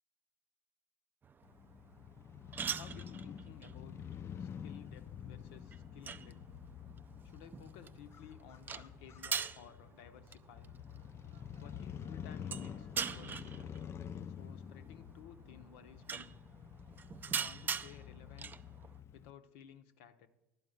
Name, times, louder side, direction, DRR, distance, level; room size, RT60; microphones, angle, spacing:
sound 1, 1.2-19.0, right 6 dB, 25° right, 0.4 m, -44 dB
Crow / Motorcycle, 1.4-19.3, left 8 dB, 35° left, 0.4 m, -48 dB
voice 1, 2.7-4.0 4.4-6.5 7.2-10.7 11.6-13.5 14.4-16.3 17.3-18.5 19.1-20.3, left 9 dB, 75° left, 10 dB, 0.6 m, -56 dB
sound 2, 10.9-13.1, right 9 dB, 90° right, 0.6 m, -67 dB
11.5 x 4.6 x 7.8 m, 0.97 s
hypercardioid pair, 80°, 7 cm